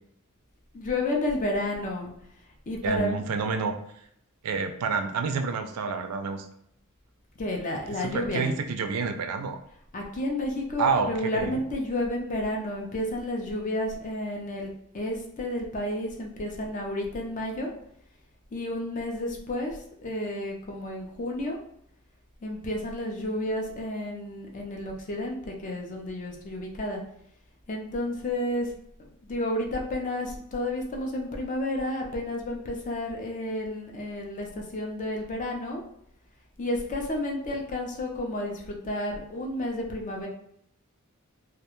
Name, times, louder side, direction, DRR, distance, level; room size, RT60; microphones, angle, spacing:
voice 1, 0.7-2.1 2.7-3.2 7.4-8.5 9.9-17.7 18.5-21.6 22.4-27.0 27.7-28.7 29.2-35.8 36.6-40.3, left 1 dB, 35° left, 1 dB, 0.5 m, -31 dB
voice 2, 2.8-3.7 4.4-6.5 8.0-9.6 10.8-11.6, right 5 dB, 85° right, 7 dB, 0.4 m, -28 dB
2.3 x 2.1 x 3.0 m, 0.70 s
head